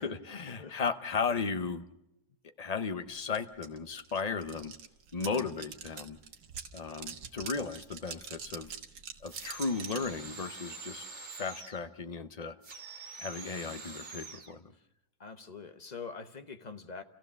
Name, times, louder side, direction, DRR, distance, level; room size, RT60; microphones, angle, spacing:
voice 1, 0.0-1.8 2.6-4.7 5.1-6.2 6.7-8.7 9.2-11.1 11.4-12.6 13.2-14.6, left 5 dB, 60° left, 9 dB, 0.4 m, -35 dB
sound 1, 3.3-3.4 3.6-10.1, right 7 dB, 75° right, 1.9 m, -44 dB
voice 2, 5.2-5.5 15.2-17.0, left 5 dB, 30° left, 8 dB, 0.9 m, -44 dB
sound 2, 9.3-11.9 12.6-14.5, right 4 dB, 40° right, 2.0 m, -46 dB
28.5 x 15.0 x 6.8 m, 0.85 s
omnidirectional pair, 1.9 m